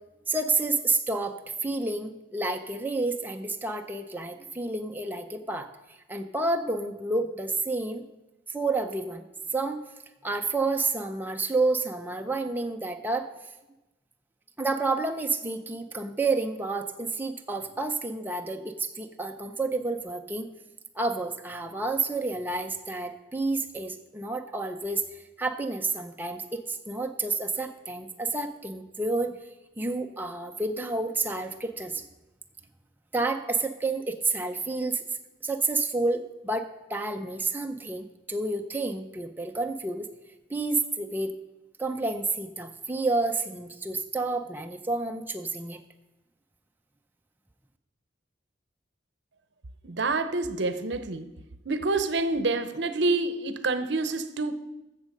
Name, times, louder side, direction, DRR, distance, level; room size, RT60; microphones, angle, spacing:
voice 1, 0.3-5.7 6.1-8.0 8.5-9.2 9.5-9.8 10.2-13.3 14.6-20.5 21.0-29.3 29.8-32.0 33.1-35.0 35.4-40.1 40.5-41.3 41.8-45.8, right 3 dB, 10° right, 4 dB, 0.6 m, -30 dB
voice 2, 49.8-51.3 51.6-54.5, right 3 dB, 65° right, 11 dB, 0.8 m, -27 dB
13.5 x 7.3 x 5.3 m, 1.0 s
head